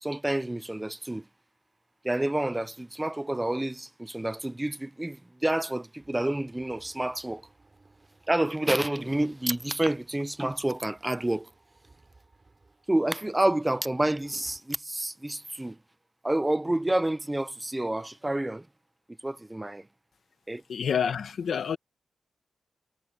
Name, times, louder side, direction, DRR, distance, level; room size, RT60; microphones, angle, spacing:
voice 1, 0.0-1.2 2.0-7.4 8.3-11.5 12.9-15.8 16.2-18.7 19.2-19.9 20.5-20.6, right 1 dB, 10° right, 0.7 m, -29 dB
sound 1, 6.0-14.6, right 3 dB, 30° right, 7.0 m, -61 dB
voice 2, 20.7-21.8, left 7 dB, 80° left, 1.3 m, -28 dB
wide cardioid pair, 125°, 0 cm